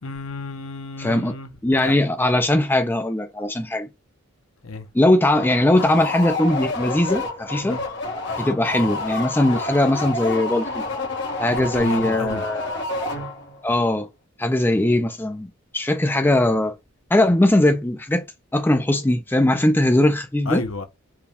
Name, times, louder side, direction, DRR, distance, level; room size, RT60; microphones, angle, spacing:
voice 1, 0.0-1.5 1.8-1.9 4.6-4.9 7.6-7.8 11.5-12.4 20.5-20.8, left 3 dB, 70° left, 0.8 m, -31 dB
voice 2, 1.0-1.3 1.6-3.9 4.9-7.8 8.4-10.8 11.4-12.8 13.6-14.1 14.4-15.5 15.7-16.7 17.1-18.2 18.5-20.6, left 1 dB, 10° left, 0.4 m, -20 dB
sound 1, 5.3-13.6, left 2 dB, 55° left, 1.4 m, -29 dB
4.5 x 2.3 x 3.4 m
head